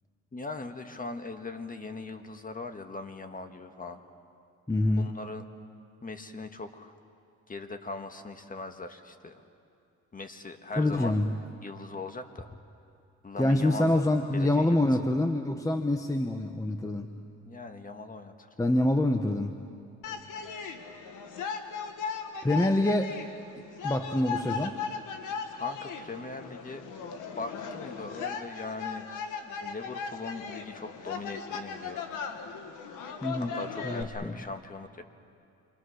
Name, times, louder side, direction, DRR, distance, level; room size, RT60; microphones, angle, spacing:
voice 1, 0.3-4.0 5.0-5.4 6.0-6.9 7.5-9.4 10.1-11.2 11.6-12.5 13.2-14.0 14.3-15.1 17.4-18.7 20.3-20.8 25.5-26.8 27.4-29.1 29.4-32.0 33.5-35.0, left 3 dB, 30° left, 7 dB, 1.7 m, -40 dB
voice 2, 4.7-5.1 10.8-11.3 13.4-17.1 18.6-19.5 22.4-23.1 23.6-24.8 33.2-33.5 33.8-34.4, left 1 dB, 10° left, 6 dB, 1.1 m, -26 dB
sound 1, 20.0-34.0, left 6 dB, 85° left, 1.7 m, -37 dB
28.0 x 24.0 x 6.5 m, 2.5 s
cardioid pair, 90°, 30 cm